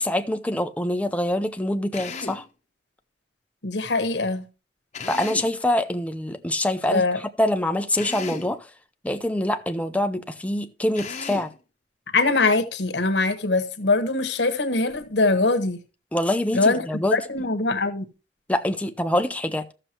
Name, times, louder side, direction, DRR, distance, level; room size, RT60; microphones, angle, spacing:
voice 1, 0.0-2.4 5.1-7.0 7.4-8.7 9.0-11.5 16.1-17.2 18.5-19.6, left 1 dB, 10° left, 0.6 m, -25 dB
Drill, 1.9-2.5 4.9-5.6 7.9-8.6 10.9-11.6, left 4 dB, 40° left, 1.0 m, -35 dB
voice 2, 3.6-4.4 6.9-7.2 12.1-15.8 16.5-18.0, left 3 dB, 80° left, 1.2 m, -22 dB
14.0 x 6.7 x 3.0 m
head